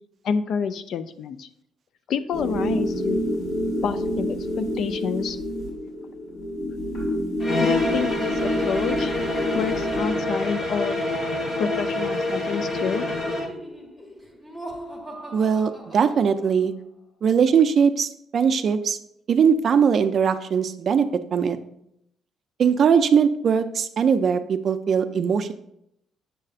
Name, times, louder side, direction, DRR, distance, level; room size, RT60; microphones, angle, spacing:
voice 1, 0.2-1.5 2.1-3.2 3.8-5.4 7.6-9.1 9.5-11.0 11.6-13.0, left 6 dB, 50° left, 12 dB, 0.4 m, -28 dB
sound 1, 2.3-10.2, equal, 90° left, 2.5 m, -28 dB
sound 2, 7.4-13.6, left 2 dB, 35° left, 0.9 m, -26 dB
Laughter, 13.1-16.8, right 1 dB, 10° left, 0.9 m, -40 dB
voice 2, 15.3-16.7 17.2-19.0 19.3-21.6 22.6-25.5, right 6 dB, 40° right, 10 dB, 0.4 m, -20 dB
7.5 x 6.5 x 2.4 m, 0.75 s
cardioid pair, 175°, 0 cm